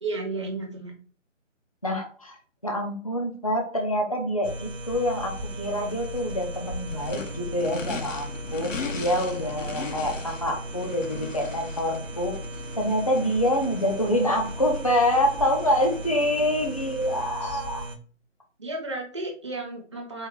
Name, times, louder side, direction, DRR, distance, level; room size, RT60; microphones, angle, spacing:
voice 1, 0.0-1.0 17.1-17.6 18.6-20.3, right 2 dB, 25° right, 0 dB, 0.7 m, -33 dB
voice 2, 1.8-2.4 2.6-12.4 12.7-17.9, equal, 30° left, 2 dB, 0.4 m, -26 dB
sound 1, 4.4-18.0, right 1 dB, 70° right, 1.0 m, -36 dB
Race car auto racing / Idling / Accelerating revving vroom, 5.2-17.3, left 4 dB, 85° left, 0.9 m, -40 dB
4.5 x 2.4 x 3.6 m, 0.43 s
figure-of-eight pair, 165°, 38 cm